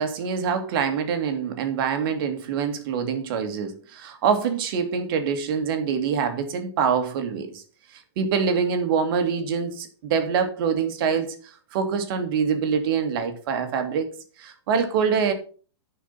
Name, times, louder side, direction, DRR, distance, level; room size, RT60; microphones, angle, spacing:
voice 1, 0.0-7.6 7.9-14.1 14.4-15.3, right 6 dB, 55° right, 7 dB, 2.0 m, -25 dB
10.0 x 4.8 x 5.6 m, 0.40 s
hypercardioid pair, 125°, 14 cm